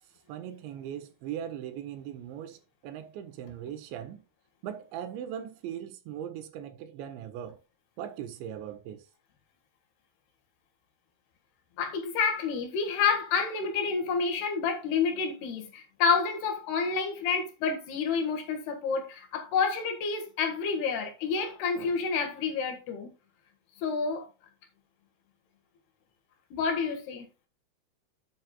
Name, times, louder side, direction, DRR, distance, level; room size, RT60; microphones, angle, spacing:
voice 1, 0.3-2.6 2.8-4.2 4.6-7.6 8.0-9.0, right 10 dB, 80° right, 3.3 m, -39 dB
voice 2, 11.8-23.1 23.8-24.3 26.5-27.3, left 5 dB, 65° left, 3.5 m, -29 dB
10.5 x 8.2 x 2.3 m
omnidirectional pair, 5.2 m